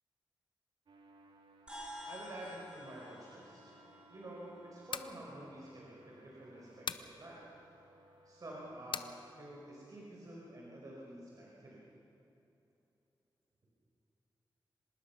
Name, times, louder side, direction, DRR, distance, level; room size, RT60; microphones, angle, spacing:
sound 1, 0.9-8.7, right 1 dB, 90° right, 2.4 m, -63 dB
sound 2, 1.7-6.3, equal, 10° right, 6.3 m, -52 dB
voice 1, 2.1-3.6 4.1-7.4 8.2-9.1 9.4-11.8, right 1 dB, 45° right, -4 dB, 4.9 m, -49 dB
sound 3, 4.9-5.2 6.9-7.1 8.9-9.1, left 6 dB, 75° left, 0.8 m, -39 dB
25.5 x 19.5 x 5.9 m, 2.8 s
wide cardioid pair, 115°, 8 cm